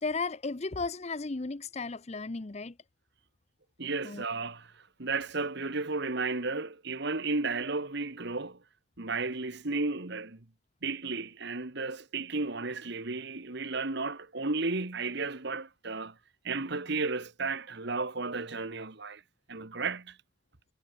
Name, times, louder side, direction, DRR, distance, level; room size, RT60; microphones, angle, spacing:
voice 1, 0.0-2.8 4.0-4.3, left 3 dB, 30° left, 0.6 m, -35 dB
voice 2, 3.8-4.7 5.0-8.6 9.0-10.4 10.8-16.2 16.4-19.2 19.5-20.2, right 3 dB, 55° right, 1.5 m, -33 dB
head